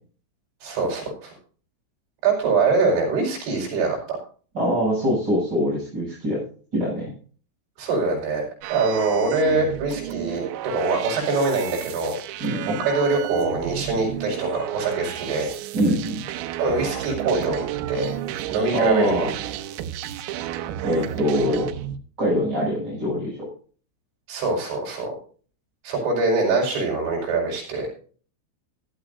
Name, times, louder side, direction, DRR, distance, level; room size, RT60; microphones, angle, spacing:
voice 1, 0.6-1.3 2.2-4.2 7.8-12.2 12.7-15.5 16.6-17.6 17.9-18.1 18.5-19.1 24.3-25.1 25.8-27.9, right 3 dB, 60° right, -1 dB, 7.3 m, -23 dB
voice 2, 4.5-6.4 6.7-7.1 12.4-12.8 15.7-16.2 18.7-19.3 20.8-21.7 22.2-23.5, equal, 20° right, -8 dB, 8.4 m, -23 dB
sound 1, 8.6-22.0, right 12 dB, 85° right, 3.6 m, -32 dB
16.0 x 12.5 x 2.7 m, 0.41 s
omnidirectional pair, 5.9 m